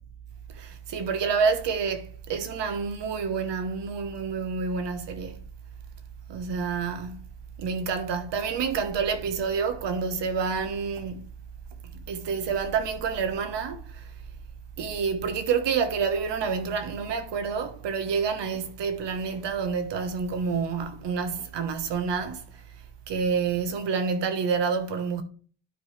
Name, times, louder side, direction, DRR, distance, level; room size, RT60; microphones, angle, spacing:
voice 1, 0.5-5.4 6.3-7.2 7.6-11.3 11.9-14.0 14.8-22.5 23.1-25.2, right 5 dB, 80° right, 1.3 m, -28 dB
11.5 x 4.9 x 3.3 m
cardioid pair, 80°, 42 cm